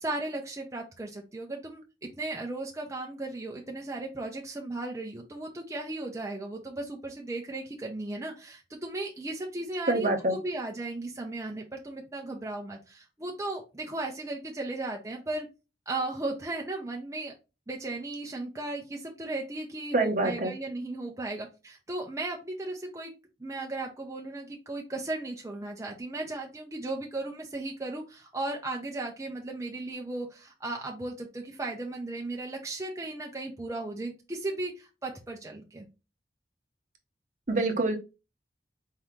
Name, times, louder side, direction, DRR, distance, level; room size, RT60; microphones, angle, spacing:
voice 1, 0.0-1.8 2.2-15.5 15.9-17.3 17.7-23.1 23.4-35.9, right 2 dB, 15° right, 0.6 m, -36 dB
voice 2, 9.9-10.3 19.9-20.5 37.5-38.0, right 2 dB, 45° right, 0.9 m, -25 dB
4.5 x 2.8 x 3.6 m
head